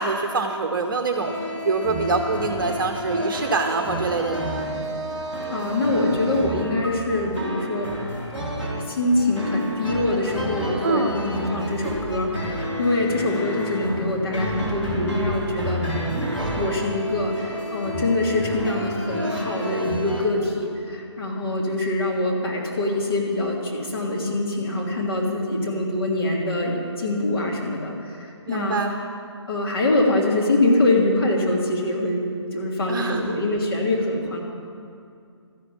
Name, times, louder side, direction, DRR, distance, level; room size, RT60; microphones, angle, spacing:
voice 1, 0.0-1.3 1.7-4.5 10.8-11.2 28.5-29.0 32.9-33.4, right 3 dB, 45° right, 4 dB, 0.9 m, -25 dB
sound 1, 1.2-20.2, equal, 10° left, 2.4 m, -30 dB
voice 2, 5.5-7.9 8.9-15.8 16.5-29.0 29.5-32.2 32.5-34.4, left 2 dB, 50° left, -2 dB, 2.9 m, -24 dB
13.0 x 11.5 x 7.3 m, 2.4 s
figure-of-eight pair, 145°, 15 cm